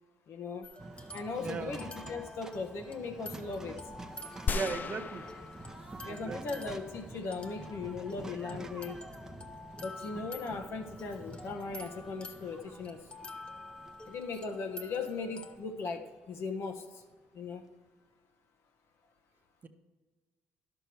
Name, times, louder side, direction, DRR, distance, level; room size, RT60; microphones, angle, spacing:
voice 1, 0.3-0.7 1.1-3.8 6.0-9.0 9.8-13.0 14.0-16.0 16.3-16.8 17.3-17.6, left 4 dB, 60° left, 5 dB, 1.2 m, -38 dB
sound 1, 0.6-15.6, left 2 dB, 25° left, 1.1 m, -49 dB
sound 2, 0.8-17.0, right 2 dB, 10° right, 0.8 m, -48 dB
voice 2, 1.4-1.7 4.5-5.2 6.1-6.6 19.6-19.7, right 5 dB, 40° right, 7 dB, 0.9 m, -37 dB
sound 3, 4.5-6.2 6.7-6.8, left 5 dB, 40° left, 0.4 m, -36 dB
11.0 x 6.8 x 4.6 m, 1.4 s
supercardioid pair, 75°, 5 cm